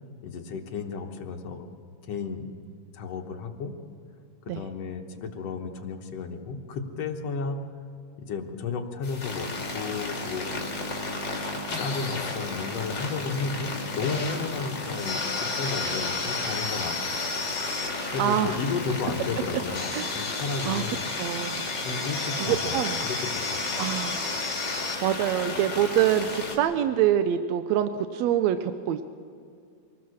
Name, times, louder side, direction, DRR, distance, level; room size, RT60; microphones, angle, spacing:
voice 1, 0.2-1.7 2.0-2.5 2.9-3.8 4.6-7.8 8.2-10.5 11.8-17.4 18.1-21.0 21.9-23.9, left 4 dB, 60° left, 4 dB, 2.0 m, -33 dB
sound 1, 9.0-26.6, left 3 dB, 35° left, 2.8 m, -32 dB
Crash cymbal, 15.6-18.7, right 1 dB, 55° right, 7.9 m, -46 dB
voice 2, 18.2-18.6 19.9-20.2 20.6-20.8 21.2-21.6 22.4-23.0 23.8-24.3 25.0-29.0, right 11 dB, 80° right, 10 dB, 1.6 m, -25 dB
24.5 x 19.0 x 6.4 m, 2.3 s
omnidirectional pair, 3.8 m